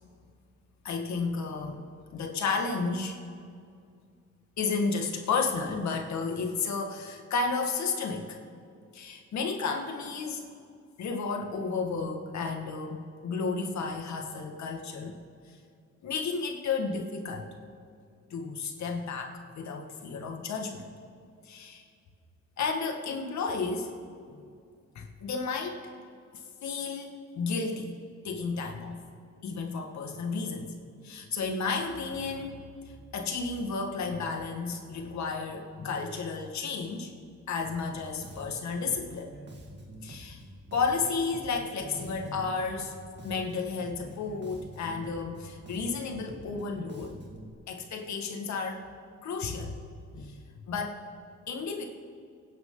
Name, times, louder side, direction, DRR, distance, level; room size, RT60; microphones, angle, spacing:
voice 1, 0.8-1.8 2.1-3.2 4.6-8.4 8.9-10.5 11.0-15.2 16.0-17.5 18.3-20.9 21.5-21.8 22.6-24.0 24.3-24.4 25.0-25.8 26.6-28.0 28.2-29.0 29.4-30.7 31.0-37.1 37.5-39.3 40.0-40.4 40.7-42.9 43.2-47.2 47.7-48.8 49.2-49.7 50.1-50.4 50.7-51.0 51.5-51.8, left 4 dB, 65° left, 3 dB, 2.0 m, -32 dB
Bass guitar, 37.6-47.5, right 1 dB, 35° right, 2.1 m, -47 dB
24.5 x 10.0 x 4.0 m, 2.3 s
cardioid pair, 90°, 30 cm